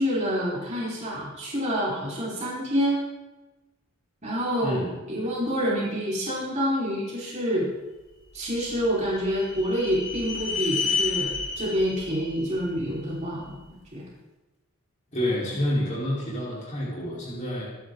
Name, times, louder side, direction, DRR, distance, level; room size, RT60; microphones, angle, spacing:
voice 1, 0.0-3.0 4.2-7.7 8.3-13.6 13.9-14.0, equal, 35° right, -6 dB, 4.9 m, -27 dB
voice 2, 4.6-5.0 15.1-17.6, left 1 dB, 35° left, -6 dB, 4.5 m, -28 dB
sound 1, 8.3-13.5, left 4 dB, 65° left, 4.1 m, -32 dB
25.0 x 11.0 x 4.0 m, 1.1 s
head